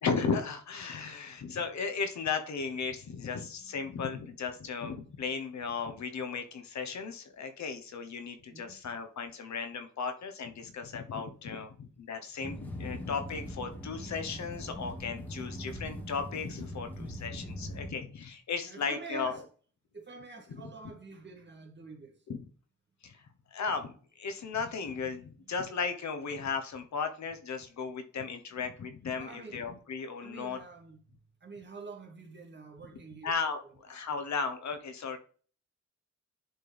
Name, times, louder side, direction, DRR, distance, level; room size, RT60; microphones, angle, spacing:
voice 1, 0.0-19.4 20.6-20.7 22.3-22.4 23.0-23.2 23.5-30.6 33.2-35.2, left 5 dB, 70° left, 1.2 m, -35 dB
sound 1, 12.4-17.9, equal, 5° left, 2.0 m, -41 dB
voice 2, 18.6-19.4 19.9-22.2 29.2-29.6 30.2-31.0 31.4-33.3 33.9-34.4, right 4 dB, 40° right, 2.3 m, -47 dB
10.5 x 4.5 x 3.5 m
cardioid pair, 85°, 29 cm